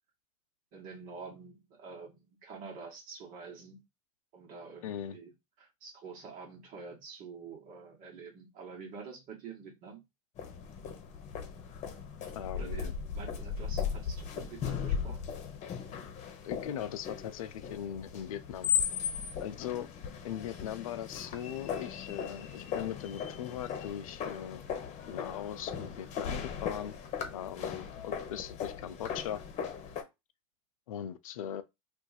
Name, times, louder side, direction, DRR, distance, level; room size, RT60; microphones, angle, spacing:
voice 1, 0.7-3.8 4.3-5.3 5.6-10.0 12.5-15.2, right 5 dB, 50° right, 1.3 m, -47 dB
voice 2, 4.8-5.2 12.3-12.9 16.4-18.7 19.4-19.9 20.2-24.6 25.1-26.9 27.3-29.4 30.9-31.6, left 10 dB, 80° left, 0.4 m, -39 dB
sound 1, 10.4-30.0, left 7 dB, 40° left, 0.9 m, -37 dB
2.5 x 2.3 x 4.0 m
hypercardioid pair, 95°, 17 cm